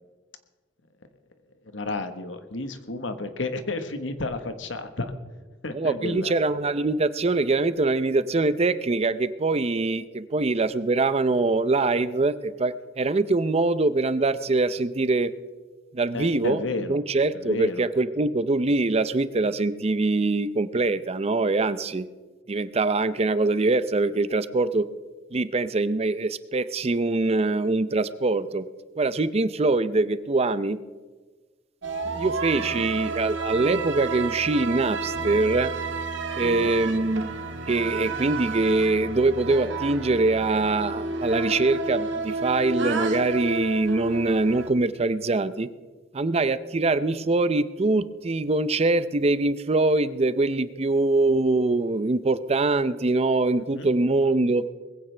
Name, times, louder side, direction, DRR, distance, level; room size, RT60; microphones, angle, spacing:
voice 1, 1.7-5.1 5.6-6.4 16.1-17.0 17.3-17.9 32.6-32.9 36.4-36.7 53.7-53.9, left 2 dB, 85° left, 8 dB, 1.3 m, -32 dB
voice 2, 5.7-15.3 15.9-22.1 22.5-24.9 25.3-28.7 29.0-30.8 32.2-35.7 36.4-37.3 37.7-45.7 46.1-54.6, right 3 dB, 35° right, 14 dB, 0.5 m, -23 dB
sound 1, 31.8-44.7, right 3 dB, 80° right, 1.6 m, -31 dB
20.5 x 15.5 x 3.4 m, 1.3 s
head